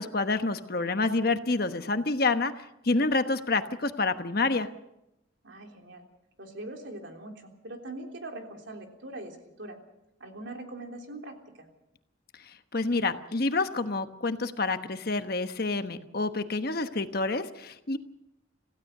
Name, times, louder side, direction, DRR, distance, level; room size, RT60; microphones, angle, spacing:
voice 1, 0.0-4.7 12.7-18.0, left 3 dB, 50° left, 8 dB, 1.1 m, -28 dB
voice 2, 5.4-6.0 6.4-9.8 10.2-11.7, right 2 dB, 65° right, 3 dB, 3.5 m, -42 dB
27.0 x 16.0 x 6.6 m, 0.87 s
head